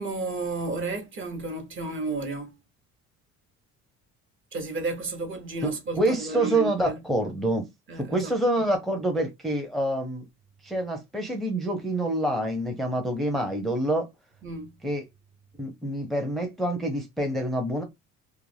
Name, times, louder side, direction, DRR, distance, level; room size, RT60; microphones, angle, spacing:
voice 1, 0.0-2.5 4.5-7.0 7.9-8.3 14.4-14.8, right 3 dB, 40° right, 0.9 m, -32 dB
voice 2, 6.0-7.7 8.0-10.2 10.6-14.1 14.8-15.0 15.6-17.8, right 1 dB, ahead, 0.6 m, -26 dB
2.3 x 2.1 x 3.2 m
supercardioid pair, 90°, 30 cm